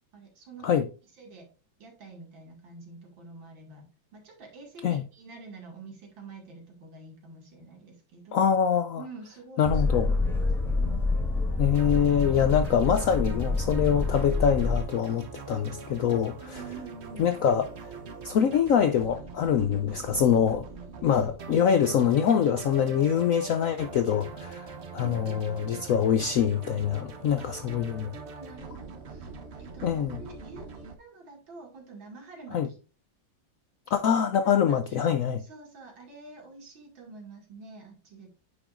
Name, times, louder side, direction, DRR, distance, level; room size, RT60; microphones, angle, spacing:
voice 1, 0.1-0.9 1.2-1.5 1.8-3.8 4.1-8.5 9.0-11.0 16.4-17.3 25.0-25.3 27.4-29.3 29.6-32.8 34.5-35.0 35.4-38.3, right 3 dB, 85° right, 2.9 m, -47 dB
voice 2, 8.3-9.0 9.6-10.1 11.6-16.3 17.2-17.7 18.2-20.7 21.0-28.1 29.8-30.2 32.5-32.7 33.9-35.4, left 8 dB, 75° left, 0.7 m, -24 dB
Boat Water vehicle, 9.6-14.8, left 3 dB, ahead, 1.4 m, -27 dB
sound 1, 11.7-30.9, right 4 dB, 45° right, 0.9 m, -42 dB
9.6 x 5.3 x 2.5 m
omnidirectional pair, 2.1 m